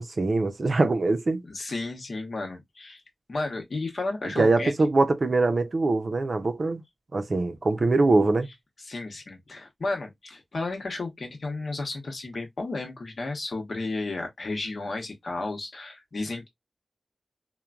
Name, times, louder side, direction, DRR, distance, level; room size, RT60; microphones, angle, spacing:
voice 1, 0.0-1.4 4.2-6.8 7.1-8.5, right 3 dB, 60° right, 0.5 m, -23 dB
voice 2, 1.4-3.0 3.3-4.7 8.9-16.5, left 3 dB, 70° left, 0.9 m, -33 dB
3.1 x 2.1 x 2.3 m
cardioid pair, 45°, 0 cm